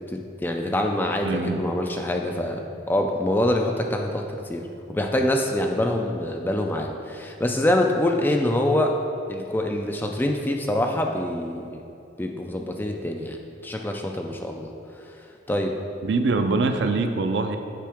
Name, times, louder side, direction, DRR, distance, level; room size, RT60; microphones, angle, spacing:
voice 1, 0.0-9.0 9.3-11.8 12.2-14.7 15.5-15.8, left 1 dB, 10° left, 2 dB, 0.3 m, -25 dB
voice 2, 1.2-1.6 16.0-17.6, right 3 dB, 70° right, 7 dB, 0.4 m, -23 dB
7.5 x 4.6 x 3.5 m, 2.6 s
head